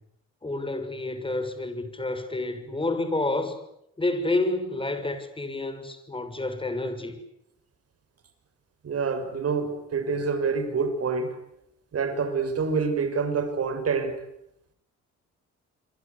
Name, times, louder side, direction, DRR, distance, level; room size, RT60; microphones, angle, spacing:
voice 1, 0.4-3.6 4.0-7.2, left 2 dB, 15° left, 10 dB, 6.1 m, -29 dB
voice 2, 8.8-11.4 11.9-14.2, right 5 dB, 50° right, 9 dB, 6.3 m, -27 dB
28.0 x 23.5 x 8.4 m, 0.77 s
cardioid pair, 90°, 30 cm